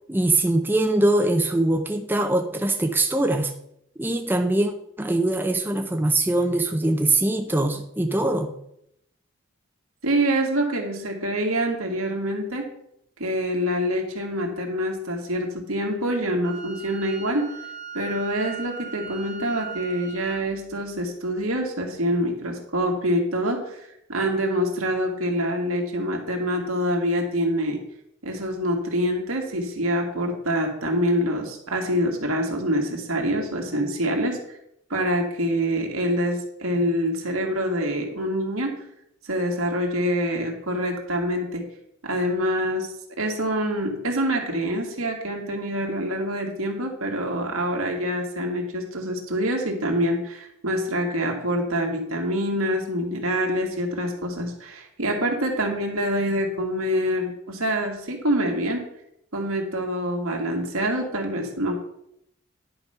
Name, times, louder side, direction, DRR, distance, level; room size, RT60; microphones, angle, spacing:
voice 1, 0.1-3.5 4.0-8.6, right 2 dB, 10° right, 4 dB, 0.5 m, -22 dB
voice 2, 10.0-12.7 13.2-17.5 17.9-23.8 24.1-27.8 28.2-34.4 34.9-38.8 39.2-41.6 42.0-42.9 43.2-58.8 59.3-61.7, equal, 85° right, 2 dB, 2.0 m, -25 dB
Wind instrument woodwind instrument, 16.4-20.4, right 6 dB, 50° right, 1.4 m, -38 dB
10.5 x 5.1 x 5.7 m, 0.74 s
head